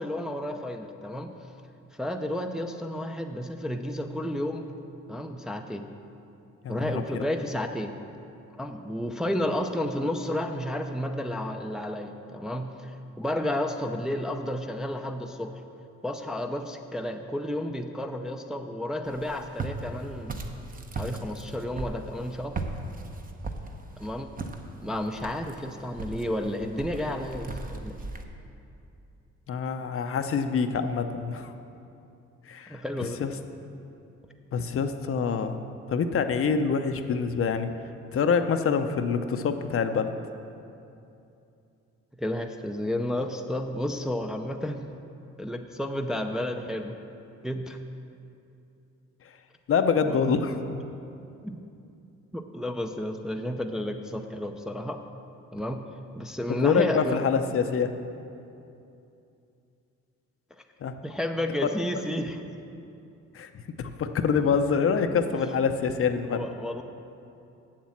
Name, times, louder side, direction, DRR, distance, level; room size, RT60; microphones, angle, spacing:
voice 1, 0.0-1.3 1.9-4.7 5.1-5.9 6.7-7.9 8.6-15.6 16.0-20.4 21.0-22.6 24.0-24.3 24.8-28.0 32.7-33.2 42.2-44.9 45.4-46.9 47.4-47.8 50.0-50.2 51.4-51.6 52.3-55.0 55.5-55.8 56.2-57.2 61.0-62.4 65.4-65.5 66.2-66.8, left 1 dB, ahead, 4 dB, 0.5 m, -32 dB
Walk footsteps, 19.1-28.2, right 3 dB, 30° right, 0.8 m, -38 dB
voice 2, 29.5-31.5 32.5-32.8 33.2-33.3 34.5-35.6 35.9-37.7 38.1-40.1 49.7-50.5 56.5-57.9 60.8-60.9 63.3-63.5 63.8-66.4, left 6 dB, 45° left, 8 dB, 0.6 m, -25 dB
7.4 x 7.4 x 7.2 m, 2.7 s
cardioid pair, 90°, 30 cm